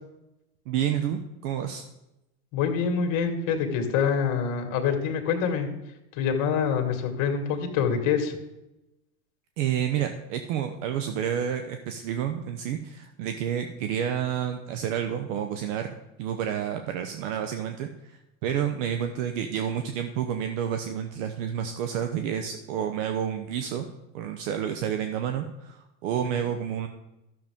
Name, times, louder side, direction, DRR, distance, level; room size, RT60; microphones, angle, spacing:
voice 1, 0.7-1.8 9.6-23.9 24.1-26.9, right 9 dB, 70° right, 7 dB, 0.9 m, -30 dB
voice 2, 2.5-5.7 6.2-8.3, left 6 dB, 55° left, 4 dB, 1.9 m, -25 dB
12.0 x 6.8 x 3.7 m, 0.92 s
supercardioid pair, 130°, 39 cm